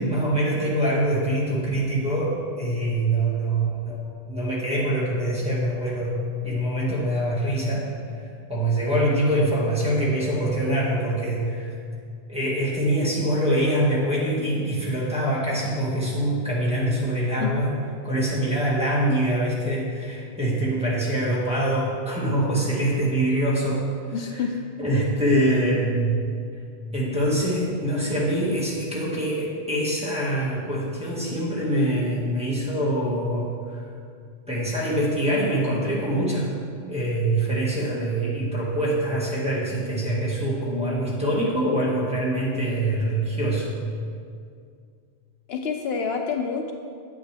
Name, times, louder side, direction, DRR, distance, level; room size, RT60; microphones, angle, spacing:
voice 1, 0.0-6.1 6.4-7.9 8.5-11.7 12.3-17.7 18.0-23.9 24.3-24.4 24.8-26.3 26.9-33.8 34.5-43.7, right 1 dB, 5° right, -8 dB, 1.9 m, -24 dB
voice 2, 24.1-24.6 45.5-46.7, left 5 dB, 70° left, 4 dB, 0.8 m, -28 dB
8.6 x 8.5 x 3.4 m, 2.3 s
omnidirectional pair, 1.1 m